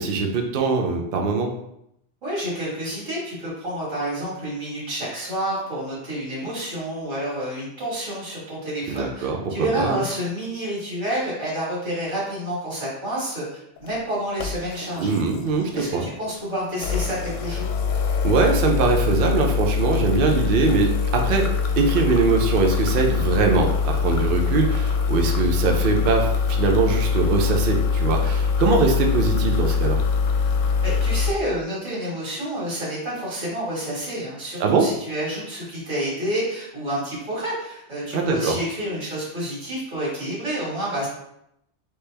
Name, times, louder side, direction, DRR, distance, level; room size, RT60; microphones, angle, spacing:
voice 1, 0.0-1.5 8.9-10.0 15.0-16.1 18.2-21.5 21.8-30.0 34.6-34.9 38.1-38.6, right 4 dB, 55° right, 2 dB, 0.7 m, -22 dB
voice 2, 2.2-15.2 15.7-17.8 25.1-25.3 30.8-41.1, right 1 dB, 90° right, -6 dB, 2.2 m, -29 dB
sound 1, 13.8-13.9 14.4-16.0 16.7-31.3, left 5 dB, 90° left, 1.0 m, -23 dB
4.2 x 3.4 x 3.3 m, 0.79 s
omnidirectional pair, 1.3 m